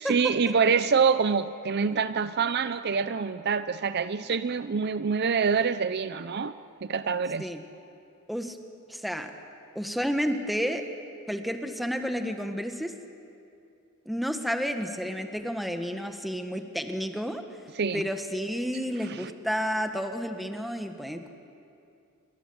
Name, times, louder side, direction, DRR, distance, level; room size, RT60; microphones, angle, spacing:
voice 1, 0.0-6.5 6.8-7.5 17.8-18.0 19.1-19.3, right 5 dB, 50° right, 13 dB, 0.6 m, -26 dB
voice 2, 8.9-9.3 9.7-10.8 11.3-12.9 14.0-17.4 17.9-21.3, equal, ahead, 5 dB, 1.5 m, -31 dB
27.0 x 24.0 x 7.9 m, 2.6 s
head